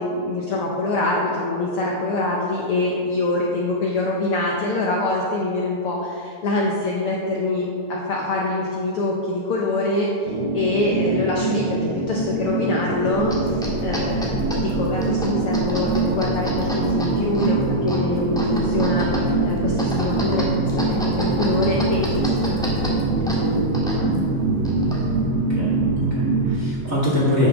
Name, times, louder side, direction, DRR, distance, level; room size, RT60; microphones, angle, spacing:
voice 1, 0.0-24.3, left 2 dB, 65° left, -3 dB, 1.4 m, -25 dB
sound 1, 10.2-26.6, right 3 dB, 85° right, 3.0 m, -23 dB
sound 2, 13.1-25.3, equal, 5° left, 0.8 m, -31 dB
voice 2, 25.5-27.5, left 1 dB, 30° right, -6 dB, 1.7 m, -24 dB
8.8 x 6.4 x 6.2 m, 2.5 s
omnidirectional pair, 3.5 m